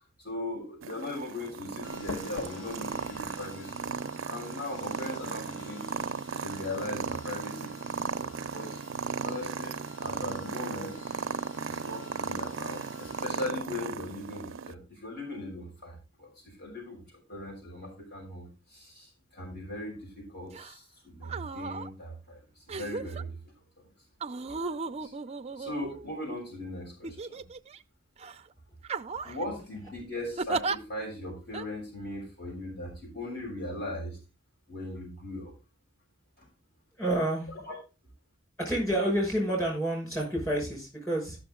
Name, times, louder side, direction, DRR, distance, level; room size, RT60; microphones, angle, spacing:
voice 1, 0.2-5.9 6.4-7.9 8.2-8.8 9.2-11.1 11.6-23.9 25.0-25.1 25.6-27.4 29.2-34.2 34.7-35.5 36.4-36.5 37.7-37.8, left 1 dB, 50° left, -2 dB, 5.4 m, -39 dB
Purr, 0.8-14.7, right 6 dB, 80° right, 0.5 m, -36 dB
sound 1, 1.8-13.5, left 3 dB, 85° left, 1.2 m, -48 dB
sound 2, 20.5-20.7 21.2-21.9 22.7-23.2 24.2-26.3 27.0-27.8 28.2-28.4 28.8-29.4 30.4-30.8 31.5-31.7, right 4 dB, 30° right, 0.5 m, -35 dB
voice 2, 37.0-37.5 38.6-41.4, right 1 dB, 15° left, -2 dB, 5.9 m, -29 dB
13.5 x 6.5 x 3.7 m, 0.30 s
head